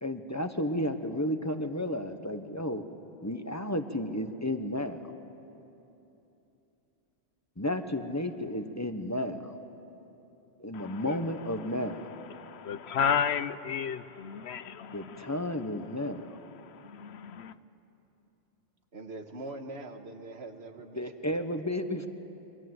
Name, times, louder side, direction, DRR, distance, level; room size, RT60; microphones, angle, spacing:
voice 1, 0.0-2.8 3.2-5.0 7.6-9.6 10.6-12.0 14.9-16.3 20.9-22.1, left 1 dB, 15° left, 8 dB, 1.2 m, -32 dB
voice 2, 10.7-11.2 12.3-15.3 16.6-17.5, left 7 dB, 85° left, 13 dB, 1.1 m, -33 dB
voice 3, 18.9-21.1, right 2 dB, 85° right, 6 dB, 1.8 m, -42 dB
28.5 x 24.0 x 8.0 m, 3.0 s
omnidirectional pair, 1.1 m